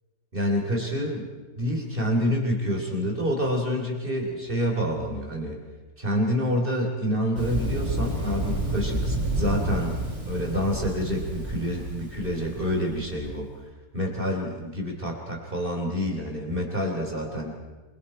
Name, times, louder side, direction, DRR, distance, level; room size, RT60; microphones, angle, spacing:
voice 1, 0.3-1.3 1.6-5.6 6.0-10.0 10.2-13.5 13.9-17.5, equal, 40° right, 0 dB, 3.6 m, -27 dB
Thunder, 7.3-13.2, right 1 dB, 55° right, 7.9 m, -30 dB
28.0 x 23.0 x 4.4 m, 1.2 s
omnidirectional pair, 1.5 m